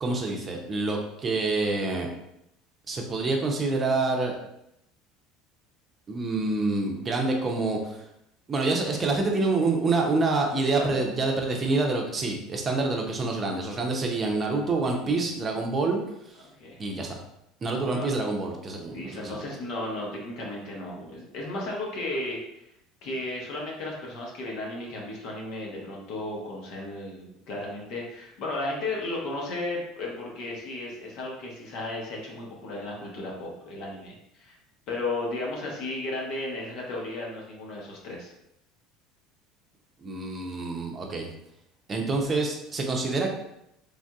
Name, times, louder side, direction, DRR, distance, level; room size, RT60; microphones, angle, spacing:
voice 1, 0.0-2.1 2.9-4.4 6.1-8.0 8.5-16.0 16.8-17.2 17.6-19.4 40.0-41.3 41.9-43.3, right 3 dB, 35° right, 1 dB, 0.6 m, -27 dB
voice 2, 10.5-11.0 16.6-16.8 17.7-18.1 18.9-22.4 23.0-34.5 34.9-38.3, left 2 dB, 65° left, -2 dB, 0.9 m, -34 dB
3.3 x 2.5 x 2.3 m, 0.82 s
hypercardioid pair, 85°, 0 cm